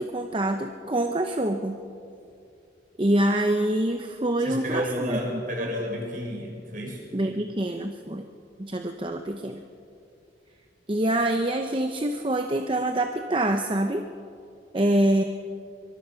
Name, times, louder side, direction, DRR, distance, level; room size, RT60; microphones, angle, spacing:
voice 1, 0.0-1.8 3.0-5.7 7.1-8.3 8.6-9.6 10.9-14.1 14.7-15.2, right 1 dB, 30° right, 6 dB, 0.8 m, -25 dB
voice 2, 4.4-7.0, equal, 50° right, -1 dB, 6.0 m, -31 dB
24.0 x 23.5 x 5.8 m, 2.5 s
head